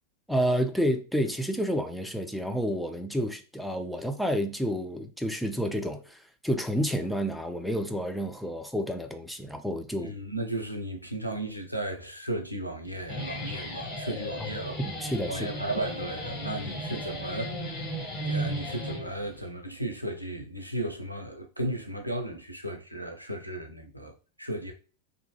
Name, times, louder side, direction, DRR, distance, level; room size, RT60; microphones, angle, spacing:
voice 1, 0.3-10.1 14.8-15.5, equal, ahead, 0.3 m, -30 dB
voice 2, 10.0-14.7 15.3-17.9 18.2-24.7, right 1 dB, 90° right, 0.5 m, -35 dB
Guitar, 12.9-19.5, equal, 25° left, 1.1 m, -35 dB
2.7 x 2.1 x 2.7 m
figure-of-eight pair, 90°, 0 cm